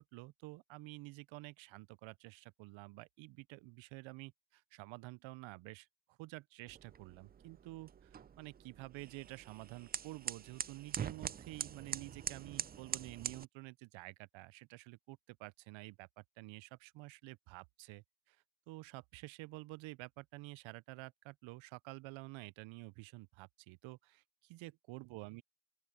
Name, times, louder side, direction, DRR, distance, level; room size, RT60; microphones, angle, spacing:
voice 1, 0.0-18.4 18.7-25.4, right 22 dB, 85° right, 0.6 m, -50 dB
sound 1, 6.7-13.4, right 8 dB, 25° right, 0.3 m, -44 dB
open air
cardioid pair, 120°, 46 cm